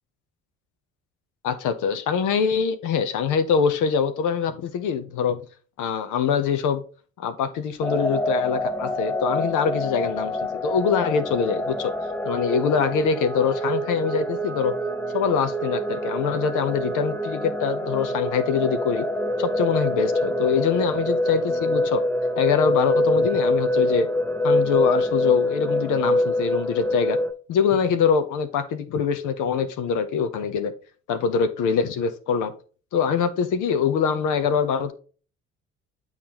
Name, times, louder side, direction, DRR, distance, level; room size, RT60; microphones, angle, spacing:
voice 1, 1.4-5.4 5.8-6.8 7.2-11.9 12.2-14.7 15.1-19.1 19.4-22.0 22.4-24.1 24.4-27.2 27.5-30.7 31.1-32.5 32.9-34.9, left 6 dB, 55° left, 0.8 m, -24 dB
sound 1, 7.8-27.3, left 1 dB, 5° left, 0.6 m, -25 dB
8.4 x 4.0 x 3.0 m
hypercardioid pair, 55°, 36 cm